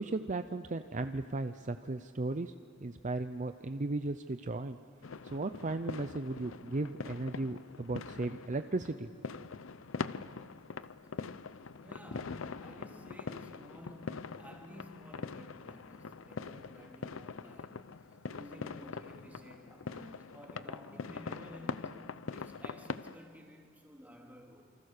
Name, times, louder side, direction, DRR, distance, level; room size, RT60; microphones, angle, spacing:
voice 1, 0.0-2.5 2.8-4.8 5.2-9.3, right 2 dB, 40° right, 0.6 m, -36 dB
sound 1, 5.0-23.1, left 4 dB, 80° left, 0.7 m, -43 dB
voice 2, 11.8-24.7, equal, 10° right, 3.2 m, -53 dB
28.0 x 26.0 x 6.7 m
head